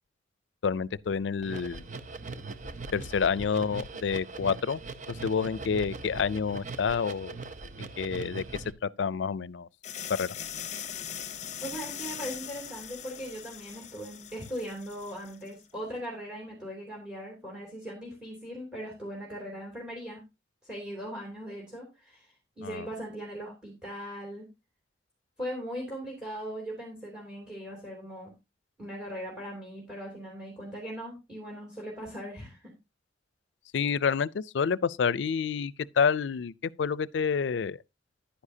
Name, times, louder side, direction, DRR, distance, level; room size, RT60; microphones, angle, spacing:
voice 1, 0.6-1.8 2.9-4.8 5.1-7.4 7.8-8.4 8.8-9.7 10.2-10.3 22.6-22.9 33.7-37.8, left 6 dB, 85° left, 0.4 m, -28 dB
sound 1, 1.0-1.1 1.4-8.7, right 3 dB, 45° right, 0.7 m, -41 dB
sound 2, 9.8-15.5, left 9 dB, 40° left, 0.8 m, -40 dB
voice 2, 11.6-20.2 20.6-24.5 25.4-28.3 28.8-32.7, equal, 5° right, 2.9 m, -39 dB
10.5 x 9.8 x 2.7 m
head